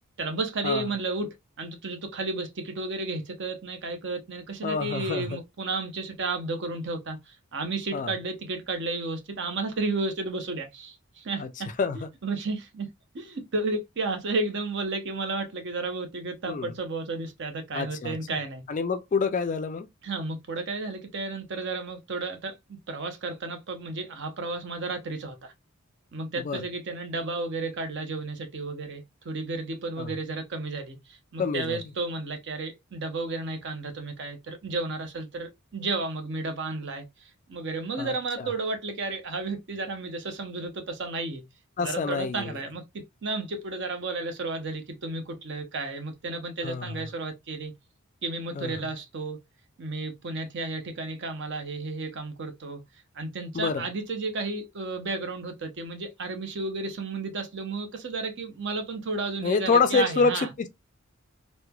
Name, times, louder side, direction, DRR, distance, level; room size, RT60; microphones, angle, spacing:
voice 1, 0.2-7.2 7.5-11.4 12.2-12.9 13.1-18.6 20.0-25.5 26.1-37.0 37.5-41.4 41.8-42.8 43.2-47.7 48.2-49.4 49.8-52.8 53.2-60.5, right 3 dB, 55° right, 0.6 m, -32 dB
voice 2, 4.6-5.3 7.9-8.1 11.4-11.5 11.8-12.1 16.5-16.7 17.7-18.4 18.7-19.9 26.4-26.6 30.0-30.1 31.4-31.8 38.0-38.5 41.8-42.6 46.6-47.0 48.5-48.8 53.5-53.8 59.4-60.7, left 4 dB, 35° left, 0.3 m, -27 dB
3.0 x 2.1 x 2.2 m
head